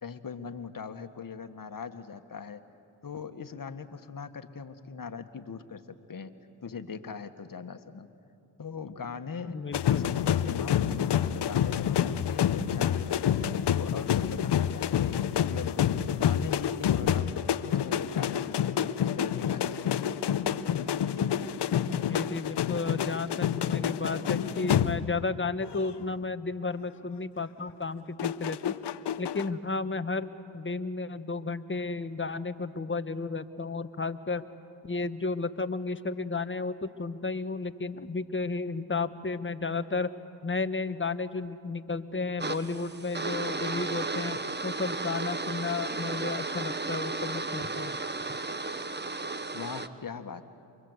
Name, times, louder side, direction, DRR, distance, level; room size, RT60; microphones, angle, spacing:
voice 1, 0.0-2.6 3.0-5.8 6.1-6.3 6.6-8.1 8.6-9.6 10.0-13.3 13.7-20.2 49.5-50.5, left 6 dB, 45° left, 8 dB, 1.8 m, -40 dB
voice 2, 9.4-10.2 21.9-28.7 29.2-34.4 34.8-40.1 40.4-47.9, left 3 dB, 25° left, 11 dB, 1.3 m, -33 dB
sound 1, 9.7-25.3 25.6-26.0 28.2-29.5, left 9 dB, 65° left, 0.9 m, -28 dB
sound 2, 42.4-49.9, right 3 dB, 25° right, 1.3 m, -34 dB
28.5 x 24.0 x 8.2 m, 2.6 s
supercardioid pair, 50°, 44 cm